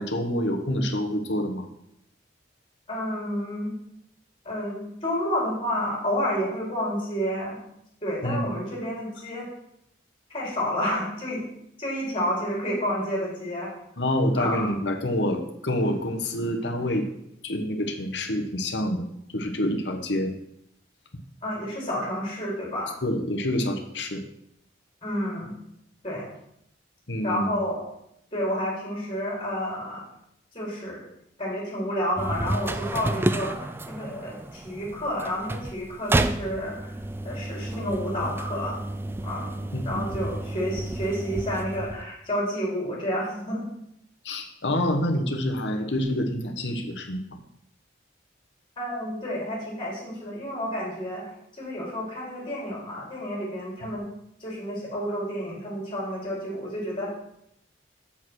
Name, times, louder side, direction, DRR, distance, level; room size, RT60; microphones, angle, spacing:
voice 1, 0.0-1.7 8.2-8.6 14.0-17.1 17.4-19.1 19.3-20.3 23.0-24.2 27.1-27.6 39.7-40.0 44.2-47.2 53.8-53.9, left 1 dB, 65° left, 5 dB, 1.2 m, -27 dB
voice 2, 2.9-3.7 4.4-7.6 8.0-9.5 10.3-11.4 11.8-13.7 14.3-14.7 21.4-23.0 25.0-25.5 26.0-26.3 27.2-27.8 28.3-30.0 30.5-31.1 31.4-36.9 37.2-38.8 39.2-39.5 39.8-43.6 48.8-51.2 51.6-54.1 54.4-57.1, equal, 30° left, -4 dB, 4.0 m, -30 dB
sound 1, 32.2-42.0, right 1 dB, 10° right, 0.3 m, -31 dB
7.2 x 6.6 x 6.2 m, 0.77 s
head